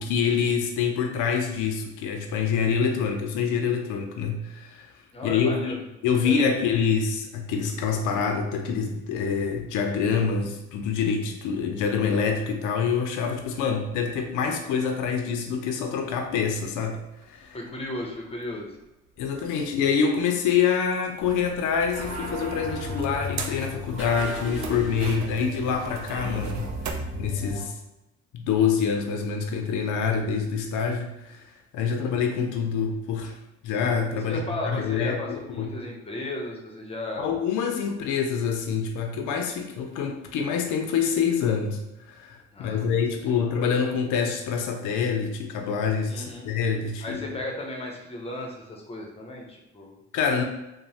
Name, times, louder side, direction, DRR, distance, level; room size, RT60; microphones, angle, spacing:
voice 1, 0.0-4.9 5.2-17.0 17.2-17.6 19.2-26.7 27.2-27.7 28.3-33.4 33.6-35.7 37.2-41.8 42.1-47.2 50.1-50.4, left 6 dB, 85° left, 3 dB, 0.5 m, -26 dB
voice 2, 5.1-5.8 6.2-6.5 17.5-18.8 31.8-32.1 34.3-37.3 37.9-38.0 42.5-43.0 43.4-43.5 46.1-46.5 47.0-50.0 50.4-50.5, left 1 dB, 20° left, 0 dB, 0.6 m, -35 dB
sound 1, 16.2-26.9, right 6 dB, 65° right, 0.5 m, -42 dB
sound 2, 21.9-27.6, left 2 dB, 40° right, 1.4 m, -34 dB
3.0 x 2.1 x 2.7 m, 0.96 s
cardioid pair, 90°, 30 cm